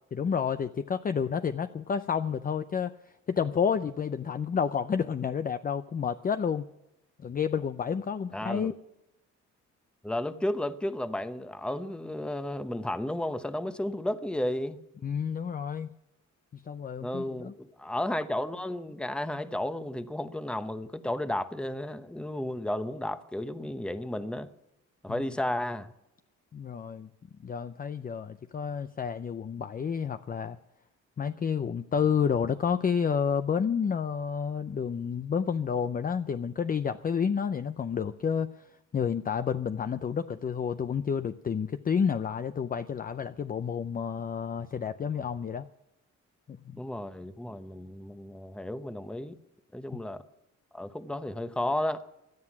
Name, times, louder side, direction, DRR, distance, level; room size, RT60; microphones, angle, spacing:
voice 1, 0.1-2.9 3.3-6.7 7.2-8.7 15.0-15.9 16.5-17.5 25.1-25.2 26.5-27.1 27.4-30.6 31.2-38.7 38.9-45.7 46.5-46.8 49.9-50.0, left 7 dB, 30° left, 0.5 m, -30 dB
voice 2, 8.3-8.7 10.0-14.8 17.0-24.5 25.0-25.9 46.7-49.4 49.7-50.2 50.7-52.0, left 1 dB, 5° left, 0.9 m, -33 dB
17.0 x 11.0 x 6.0 m
cardioid pair, 90°, 30 cm